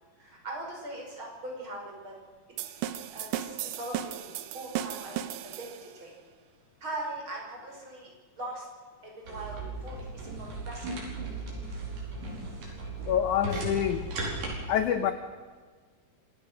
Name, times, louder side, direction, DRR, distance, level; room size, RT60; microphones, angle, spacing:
voice 1, 0.2-2.1 2.6-2.8 3.1-4.3 4.5-6.1 6.8-8.7 9.0-10.9, right 1 dB, 30° right, -1 dB, 6.3 m, -41 dB
sound 1, 2.6-6.0, right 11 dB, 75° right, 1.9 m, -36 dB
sound 2, 9.2-14.6, right 2 dB, 55° right, 6.5 m, -36 dB
voice 2, 13.1-14.0 14.7-15.1, left 9 dB, 75° left, 9 dB, 1.9 m, -26 dB
26.0 x 17.0 x 6.3 m, 1.5 s
omnidirectional pair, 4.7 m